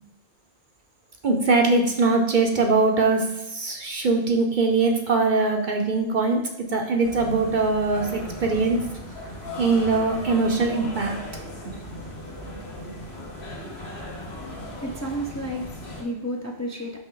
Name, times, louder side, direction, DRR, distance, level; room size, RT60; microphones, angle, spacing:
voice 1, 1.2-8.8 9.6-11.1 12.4-12.5 12.8-12.9, right 3 dB, 50° right, 2 dB, 0.9 m, -22 dB
sound 1, 7.0-16.0, left 1 dB, 65° left, 1.8 m, -37 dB
voice 2, 14.3-17.0, equal, 20° left, 0 dB, 0.6 m, -32 dB
6.1 x 5.7 x 3.9 m, 0.89 s
omnidirectional pair, 1.2 m